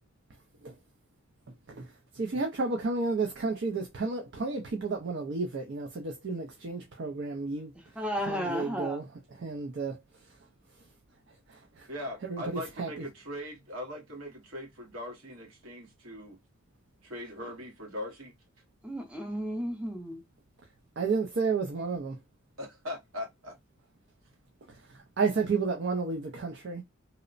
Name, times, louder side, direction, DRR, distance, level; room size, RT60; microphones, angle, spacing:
voice 1, 1.7-7.7 8.3-9.0 9.4-10.0 11.5-11.9 12.2-12.9 21.0-22.2 24.9-26.8, right 4 dB, 55° right, 0.5 m, -32 dB
voice 2, 7.7-9.0 18.8-20.2, equal, 5° right, 0.5 m, -34 dB
voice 3, 11.9-16.4 17.0-18.3 22.6-23.5, left 1 dB, 85° right, 1.1 m, -40 dB
2.9 x 2.0 x 2.4 m
head